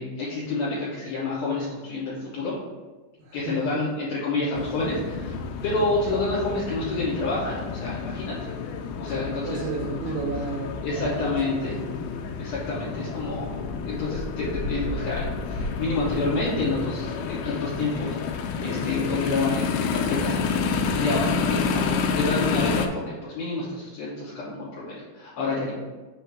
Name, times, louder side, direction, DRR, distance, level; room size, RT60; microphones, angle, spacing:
voice 1, 0.0-2.6 3.3-5.3 5.6-8.5 9.0-9.6 10.8-11.8 12.4-21.9 22.1-25.7, left 3 dB, 65° left, -9 dB, 2.9 m, -29 dB
voice 2, 3.2-3.8 9.1-12.0, right 4 dB, 80° right, -4 dB, 3.5 m, -34 dB
sound 1, 4.5-22.9, left 5 dB, 90° left, 2.4 m, -29 dB
6.9 x 3.1 x 4.7 m, 1.2 s
omnidirectional pair, 5.4 m